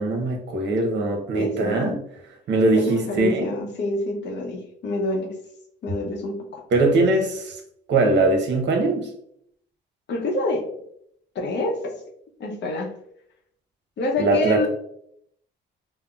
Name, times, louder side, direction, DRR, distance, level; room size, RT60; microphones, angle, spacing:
voice 1, 0.0-2.0 2.5-3.5 6.7-7.6 7.9-9.1 14.2-14.7, right 2 dB, 65° right, 3 dB, 0.7 m, -21 dB
voice 2, 1.3-1.9 2.7-5.3 5.8-6.6 10.1-10.6 11.3-12.0 12.4-12.9 14.0-14.7, left 2 dB, 60° left, 1 dB, 0.7 m, -27 dB
3.7 x 2.0 x 2.3 m, 0.71 s
cardioid pair, 90°, 20 cm